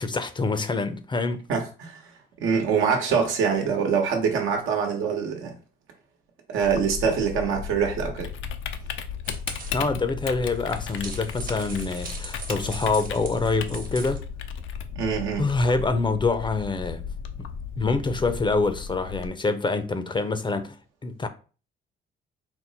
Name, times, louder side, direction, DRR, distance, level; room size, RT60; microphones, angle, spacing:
voice 1, 0.0-1.5 3.1-3.2 9.7-14.2 15.4-17.1 17.8-20.8 21.0-21.3, left 3 dB, 25° left, 0.5 m, -26 dB
voice 2, 1.5-2.0 2.4-5.5 6.5-8.3 14.9-15.5, right 6 dB, 85° right, 1.1 m, -24 dB
Typing, 6.6-19.3, left 7 dB, 80° left, 0.5 m, -35 dB
sound 1, 9.2-9.8 10.5-14.2, right 4 dB, 45° right, 0.9 m, -40 dB
4.3 x 2.0 x 4.0 m
cardioid pair, 90°, 20 cm